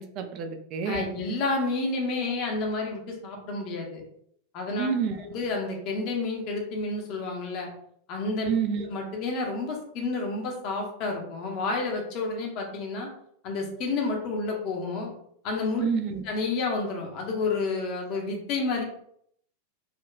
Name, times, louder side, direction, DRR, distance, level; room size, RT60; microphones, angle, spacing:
voice 1, 0.0-1.1 4.8-5.2 8.5-8.9 15.8-16.2, right 6 dB, 40° right, 6 dB, 0.4 m, -28 dB
voice 2, 0.8-4.0 4.5-4.9 5.2-7.7 8.1-8.5 8.8-13.1 13.4-15.1 15.4-15.9 16.2-18.8, left 3 dB, 40° left, 1 dB, 0.8 m, -30 dB
3.7 x 2.2 x 2.2 m, 0.69 s
figure-of-eight pair, 90°, 0 cm